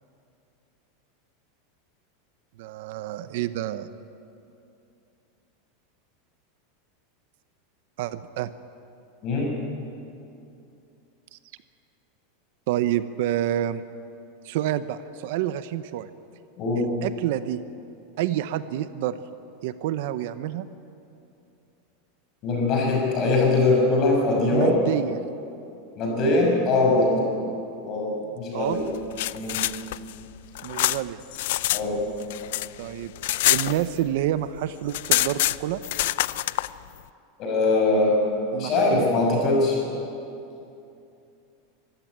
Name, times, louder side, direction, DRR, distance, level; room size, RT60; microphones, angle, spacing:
voice 1, 2.6-3.9 8.0-8.5 11.3-11.4 12.7-13.8 14.4-16.1 16.8-17.6 18.2-19.2 19.6-20.7 24.5-25.2 28.5-28.8 30.6-31.2 32.8-33.1 33.5-35.8 38.5-39.2, right 12 dB, 55° right, 13 dB, 0.7 m, -28 dB
voice 2, 9.2-9.6 16.6-16.9 22.4-24.8 26.0-27.3 27.8-28.8 29.3-29.6 31.7-32.0 37.4-38.2 38.6-39.8, left 2 dB, 30° left, 0 dB, 6.0 m, -22 dB
sound 1, 28.9-31.8 32.1-34.3 34.6-34.7 34.9-36.7, left 16 dB, 60° left, 0.5 m, -25 dB
24.5 x 15.0 x 9.3 m, 2.7 s
supercardioid pair, 170°, 0 cm